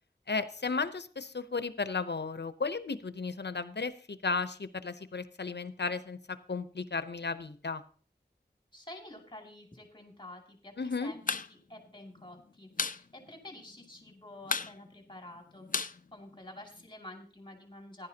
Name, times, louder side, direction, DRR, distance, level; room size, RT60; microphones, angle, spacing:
voice 1, 0.3-7.8 10.8-11.1, left 4 dB, 75° left, 12 dB, 0.8 m, -34 dB
voice 2, 8.7-11.2 11.5-18.1, left 1 dB, 25° left, 1 dB, 2.6 m, -49 dB
sound 1, 11.1-11.5 11.8-11.9 12.2-13.0 13.3-13.4 13.7-14.1 14.4-16.8, left 4 dB, 50° left, 0.5 m, -34 dB
15.0 x 11.0 x 2.8 m, 0.41 s
wide cardioid pair, 45°, 18 cm